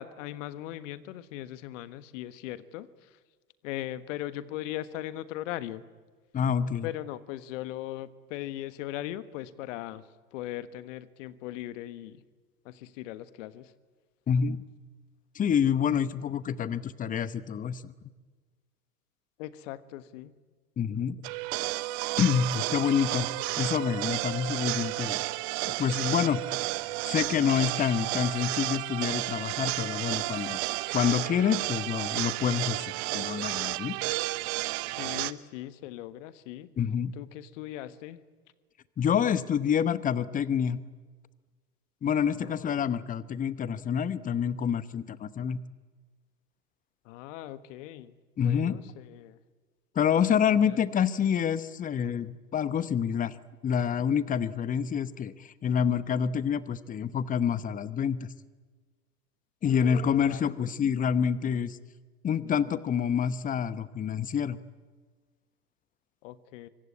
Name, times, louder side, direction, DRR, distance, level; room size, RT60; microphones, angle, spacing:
voice 1, 0.0-3.2 3.6-5.8 6.8-12.2 12.6-13.7 19.4-20.3 34.9-36.7 37.1-38.2 42.2-42.8 47.0-49.4 50.5-50.8 60.2-60.4 66.2-66.7, left 14 dB, 50° left, 13 dB, 1.5 m, -39 dB
voice 2, 6.3-6.9 14.3-14.6 15.3-17.9 20.8-21.2 22.2-23.3 23.6-25.2 25.8-26.4 27.0-30.6 30.9-34.0 36.8-37.1 39.0-40.8 42.0-45.6 48.4-48.8 49.9-53.4 53.6-58.3 59.6-61.8 62.2-64.6, left 8 dB, 15° left, 16 dB, 0.9 m, -27 dB
sound 1, 21.2-35.3, right 20 dB, 40° right, 1.0 m, -32 dB
24.5 x 23.5 x 9.6 m, 1.4 s
figure-of-eight pair, 95°, 48 cm